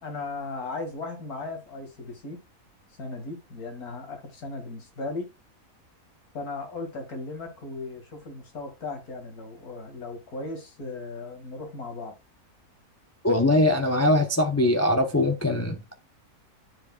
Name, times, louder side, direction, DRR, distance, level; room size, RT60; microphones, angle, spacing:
voice 1, 0.0-2.4 3.0-5.3 6.3-12.2, left 3 dB, 70° left, 2.6 m, -37 dB
voice 2, 13.2-16.0, left 1 dB, 20° left, 0.4 m, -22 dB
12.5 x 4.9 x 2.3 m
omnidirectional pair, 1.6 m